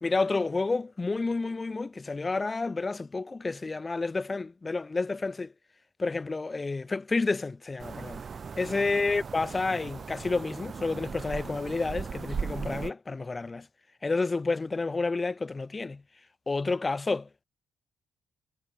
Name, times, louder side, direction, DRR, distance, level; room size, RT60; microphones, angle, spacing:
voice 1, 0.0-5.5 6.0-8.2 8.6-13.7 14.0-16.0 16.5-17.4, left 3 dB, 25° left, 0.3 m, -30 dB
sound 1, 7.8-12.9, right 6 dB, 40° right, 0.6 m, -38 dB
cardioid pair, 90°, 0 cm